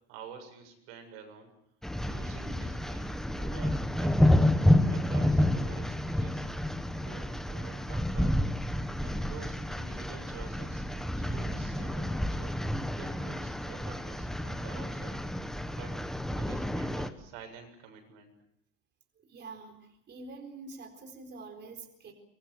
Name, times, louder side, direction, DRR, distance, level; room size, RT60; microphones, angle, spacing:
voice 1, 0.1-1.5 2.0-4.5 4.9-6.5 6.9-8.4 9.0-10.9 11.2-12.5 12.9-15.2 15.7-16.0 16.3-18.3, right 6 dB, 90° right, 5 dB, 7.4 m, -49 dB
sound 1, 1.8-17.1, left 1 dB, ahead, 1.2 m, -29 dB
voice 2, 19.3-19.8 20.1-22.1, right 3 dB, 30° right, 4 dB, 4.2 m, -45 dB
24.5 x 22.0 x 8.0 m, 0.79 s
cardioid pair, 140°, 34 cm